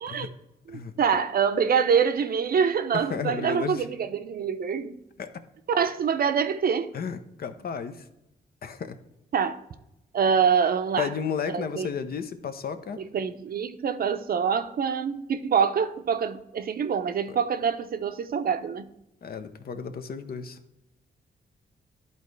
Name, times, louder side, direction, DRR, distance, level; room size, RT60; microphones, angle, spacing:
voice 1, 0.7-5.0 5.7-6.9 9.3-9.6 10.1-11.1 11.5-11.9 13.0-18.9, right 6 dB, 55° right, 0.6 m, -25 dB
voice 2, 2.9-3.9 5.2-5.4 6.9-8.1 8.6-9.0 11.0-13.0 17.3-17.4 19.2-20.6, left 6 dB, 55° left, 0.7 m, -33 dB
11.5 x 4.1 x 3.2 m
cardioid pair, 75°, 18 cm